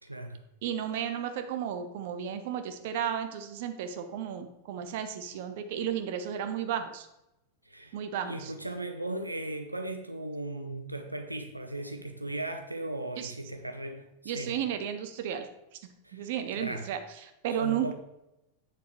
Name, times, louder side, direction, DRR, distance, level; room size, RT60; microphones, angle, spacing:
voice 1, 0.0-0.4 7.6-14.5 16.0-16.9 17.6-17.9, right 1 dB, 85° right, 5 dB, 0.6 m, -37 dB
voice 2, 0.6-7.1 7.9-8.5 13.2-13.3 14.3-15.5 16.1-17.9, right 9 dB, 50° right, 8 dB, 0.7 m, -33 dB
8.0 x 7.0 x 3.1 m, 0.90 s
figure-of-eight pair, 90°, 0 cm